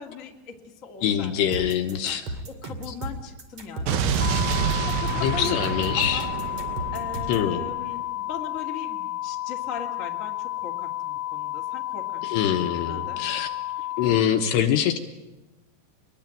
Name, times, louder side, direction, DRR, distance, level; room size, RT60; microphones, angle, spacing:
voice 1, 0.0-1.7 2.0-2.2 2.5-6.3 6.9-12.2 12.5-13.3, left 6 dB, 40° left, 1 dB, 1.1 m, -39 dB
voice 2, 1.0-2.3 5.2-6.2 7.3-7.7 12.3-13.5 14.0-15.0, left 9 dB, 75° left, 6 dB, 2.8 m, -24 dB
sound 1, 1.5-7.5, right 1 dB, 40° right, 2.7 m, -35 dB
Explosion, 3.9-7.9, right 6 dB, 70° right, 2.2 m, -28 dB
sound 2, 4.2-14.2, left 15 dB, 15° left, 0.9 m, -32 dB
25.0 x 21.0 x 9.1 m, 1.1 s
omnidirectional pair, 5.7 m